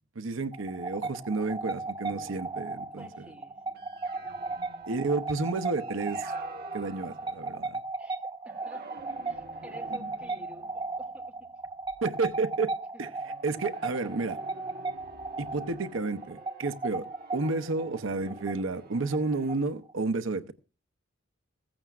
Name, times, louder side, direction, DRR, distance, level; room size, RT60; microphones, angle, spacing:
voice 1, 0.2-3.1 4.9-6.3 6.7-7.8 12.0-12.7 13.0-13.1 13.4-14.4 15.4-17.1 17.3-20.5, right 3 dB, 75° right, 0.8 m, -31 dB
sound 1, 0.5-19.9, right 3 dB, 25° right, 0.7 m, -36 dB
sound 2, 2.0-8.0 8.5-12.4 13.2-19.7, right 2 dB, 50° right, 1.2 m, -50 dB
voice 2, 2.9-3.8 4.1-4.6 8.0-8.2 8.4-11.4 12.9-13.0, equal, 5° right, 2.5 m, -51 dB
16.0 x 15.0 x 2.4 m
head